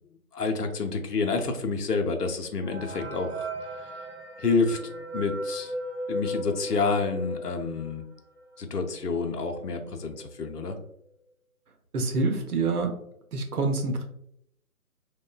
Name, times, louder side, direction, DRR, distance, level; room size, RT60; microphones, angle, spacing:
voice 1, 0.3-3.5 4.4-5.8 6.1-8.0 8.6-10.8, left 4 dB, 90° left, 4 dB, 0.6 m, -28 dB
sound 1, 2.6-8.1 8.5-8.6 8.8-9.0 9.7-9.8 10.2-10.5, equal, ahead, 0.3 m, -35 dB
voice 2, 11.9-12.9 13.3-14.0, right 3 dB, 70° right, 4 dB, 0.7 m, -26 dB
3.0 x 2.1 x 2.2 m, 0.75 s
figure-of-eight pair, 150°, 46 cm